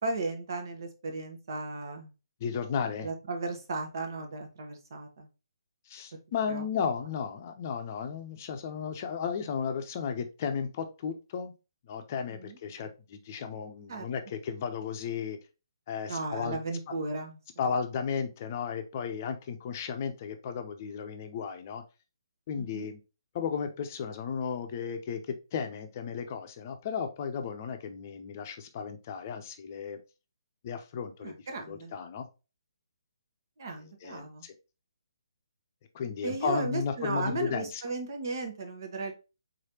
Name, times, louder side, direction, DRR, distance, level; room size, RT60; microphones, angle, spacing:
voice 1, 0.0-2.1 3.0-5.3 6.5-6.6 12.3-12.6 13.9-14.1 16.1-17.4 22.5-22.9 31.2-31.9 33.6-34.4 36.2-39.1, right 3 dB, 55° right, 4 dB, 1.1 m, -35 dB
voice 2, 2.4-3.1 5.9-11.5 11.8-15.4 15.9-16.6 17.6-21.8 22.5-23.0 23.3-30.0 30.6-32.3 33.7-34.5 35.9-37.8, left 6 dB, 40° left, 6 dB, 0.6 m, -34 dB
3.9 x 3.2 x 2.8 m, 0.30 s
figure-of-eight pair, 140°, 2 cm